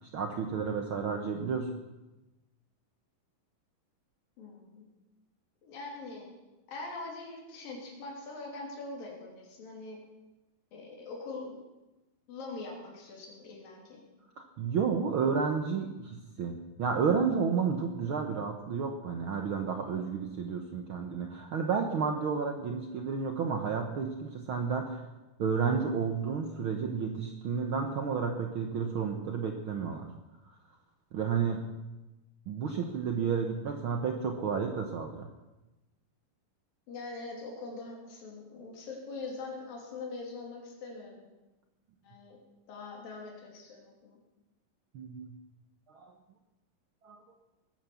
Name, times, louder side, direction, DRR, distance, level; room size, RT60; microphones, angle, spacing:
voice 1, 0.0-1.7 14.4-25.0 25.4-30.1 31.1-31.7 32.5-35.3 44.9-45.3 45.9-46.1 47.0-47.2, right 6 dB, 90° right, 4 dB, 1.1 m, -31 dB
voice 2, 4.4-4.9 5.6-6.3 6.7-10.0 10.7-11.6 12.3-14.0 36.9-41.3 42.0-42.4 42.7-44.2, left 3 dB, 80° left, -1 dB, 4.6 m, -43 dB
19.5 x 9.2 x 7.1 m, 1.1 s
omnidirectional pair, 3.9 m